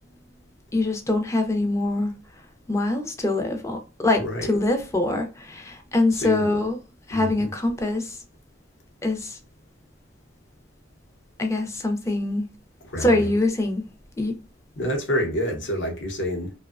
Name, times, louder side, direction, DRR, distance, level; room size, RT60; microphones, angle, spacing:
voice 1, 0.7-2.1 2.7-6.8 7.1-8.2 9.0-9.4 11.4-12.5 13.0-13.8 14.2-14.3, left 2 dB, 15° left, 0.4 m, -24 dB
voice 2, 4.2-4.5 6.1-6.5 7.1-7.5 12.8-13.3 14.8-16.5, equal, 70° left, 0.7 m, -28 dB
2.6 x 2.1 x 2.4 m
head